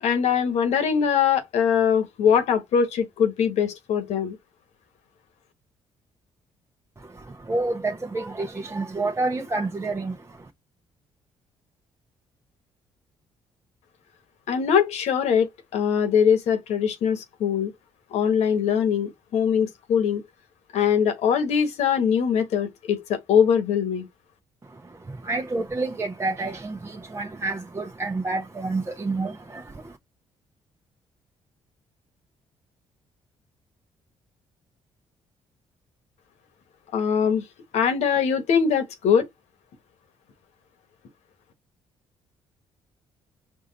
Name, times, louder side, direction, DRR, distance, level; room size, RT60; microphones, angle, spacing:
voice 1, 0.0-4.4 14.5-17.7 18.1-20.2 20.7-24.1 36.9-37.4 37.7-39.3, left 7 dB, 80° left, 1.2 m, -22 dB
voice 2, 7.0-10.5 24.6-30.0, right 3 dB, 25° right, 0.8 m, -29 dB
4.8 x 2.6 x 4.0 m
cardioid pair, 80°, 11 cm